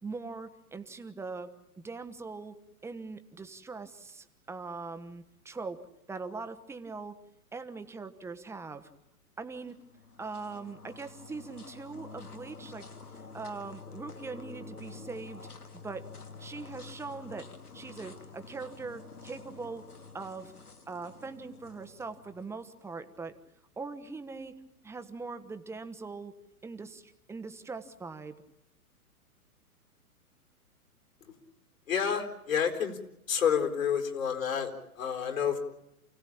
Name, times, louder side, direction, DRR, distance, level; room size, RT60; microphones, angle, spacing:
voice 1, 0.0-7.2 7.5-8.9 9.4-9.8 10.2-12.8 13.3-15.5 15.7-16.1 16.4-17.5 17.7-20.5 20.9-23.4 23.8-24.5 24.8-26.3 26.6-28.3, right 4 dB, 5° right, 9 dB, 1.2 m, -41 dB
sound 1, 9.6-22.9, left 4 dB, 85° left, 2.3 m, -49 dB
voice 2, 31.9-33.0 33.3-35.6, left 7 dB, 65° left, 4 dB, 4.5 m, -29 dB
29.0 x 17.0 x 8.8 m, 0.83 s
figure-of-eight pair, 115°, 44 cm